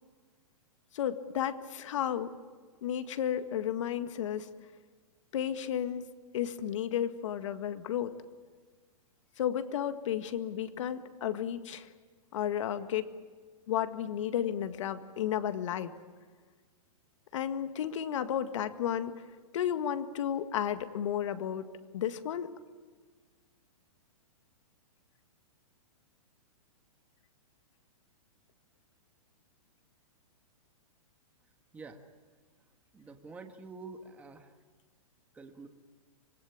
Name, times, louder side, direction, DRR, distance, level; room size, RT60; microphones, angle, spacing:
voice 1, 0.9-2.3 2.8-4.5 5.3-6.0 6.3-8.1 9.4-11.9 12.3-13.1 13.7-15.9 17.3-19.1 19.5-21.6 21.9-22.5, left 10 dB, 60° left, 9 dB, 1.9 m, -33 dB
voice 2, 32.9-34.5 35.3-35.7, right 3 dB, 10° right, 6 dB, 1.4 m, -47 dB
25.5 x 21.0 x 8.8 m, 1.5 s
hypercardioid pair, 160°, 18 cm